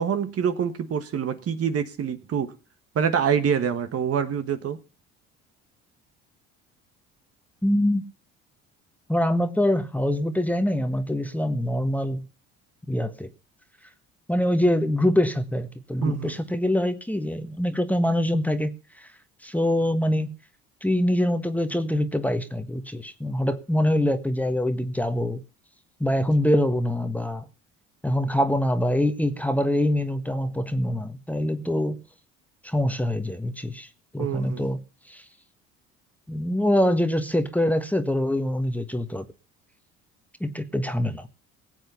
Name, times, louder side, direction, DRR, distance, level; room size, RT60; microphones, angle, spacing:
voice 1, 0.0-2.5 2.9-4.8 16.0-16.3 34.2-34.6, right 7 dB, 45° right, 1.5 m, -25 dB
voice 2, 7.6-8.0 9.1-12.2 12.9-13.3 14.3-19.1 19.4-20.4 20.8-25.4 26.0-27.5 28.0-32.0 32.6-33.9 34.1-34.8 35.1-35.2 36.3-39.2 40.4-41.3, left 1 dB, 5° left, 1.4 m, -24 dB
18.5 x 8.0 x 5.6 m
hypercardioid pair, 65°, 33 cm